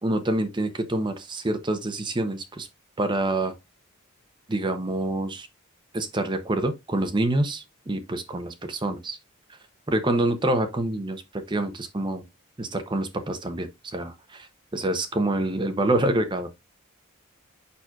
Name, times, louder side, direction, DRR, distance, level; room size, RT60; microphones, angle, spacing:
voice 1, 0.0-2.7 3.0-3.5 4.5-5.5 5.9-9.2 9.9-12.2 12.6-16.5, right 1 dB, 20° right, 0.7 m, -27 dB
6.8 x 6.0 x 2.4 m
head